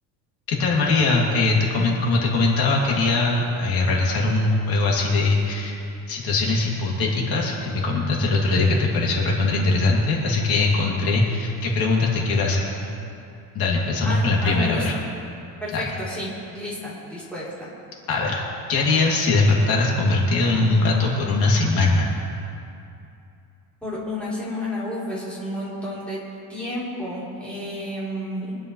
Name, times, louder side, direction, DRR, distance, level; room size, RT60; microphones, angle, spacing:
voice 1, 0.5-5.8 6.1-12.7 13.5-14.9 15.7-15.8 18.1-18.4 18.7-22.1, left 3 dB, 70° left, -3 dB, 2.8 m, -21 dB
voice 2, 14.0-15.0 15.6-17.7 23.8-26.2 26.5-28.6, left 1 dB, 5° left, -9 dB, 3.6 m, -31 dB
24.5 x 11.0 x 3.3 m, 2.6 s
cardioid pair, 180°, 37 cm